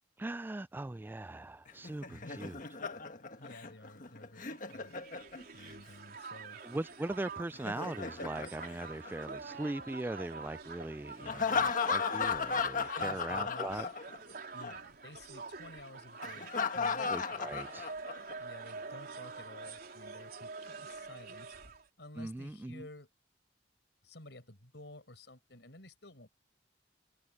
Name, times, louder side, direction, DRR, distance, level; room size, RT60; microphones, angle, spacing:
voice 1, 0.2-2.6 6.6-13.9 17.1-17.8 22.2-22.8, right 2 dB, 10° right, 0.3 m, -40 dB
Laughter, 1.7-5.7 7.4-9.6 11.3-14.3 14.6-14.7 16.2-18.3, left 5 dB, 50° left, 1.5 m, -35 dB
voice 2, 2.0-2.4 3.3-5.0 5.5-6.6 11.1-11.7 12.9-13.9 14.5-17.5 18.4-21.6 22.0-23.1 24.0-26.3, left 2 dB, 75° left, 6.1 m, -52 dB
Crowd, 4.5-21.9, right 4 dB, 60° right, 4.1 m, -47 dB
head